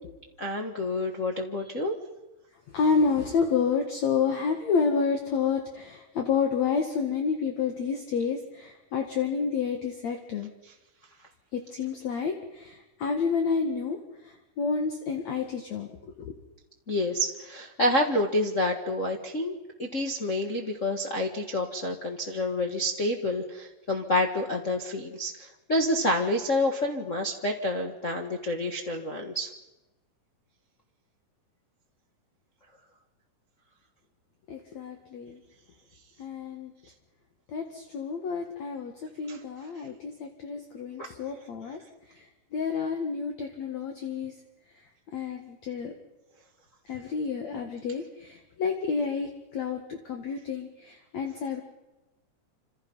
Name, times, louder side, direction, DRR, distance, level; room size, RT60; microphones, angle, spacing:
voice 1, 0.4-1.9 16.9-29.5 39.3-39.4 41.0-41.1, left 1 dB, 40° left, 1 dB, 1.1 m, -28 dB
voice 2, 2.7-10.5 11.5-14.0 14.6-15.9 16.2-16.3 34.5-35.4 36.2-36.7 37.5-38.9 39.2-41.8 42.5-44.3 45.1-45.9 46.9-51.6, left 5 dB, 55° left, 4 dB, 2.7 m, -29 dB
28.0 x 27.5 x 5.6 m, 1.0 s
omnidirectional pair, 4.2 m